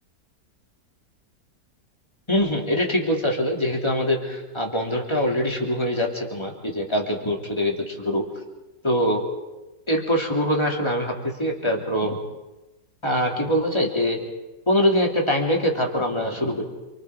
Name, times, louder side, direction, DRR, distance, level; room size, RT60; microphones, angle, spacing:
voice 1, 2.3-8.2 8.8-9.2 9.9-12.2 13.0-14.2 14.7-16.6, equal, 15° left, 0 dB, 2.9 m, -23 dB
28.0 x 24.5 x 4.8 m, 1.0 s
omnidirectional pair, 1.8 m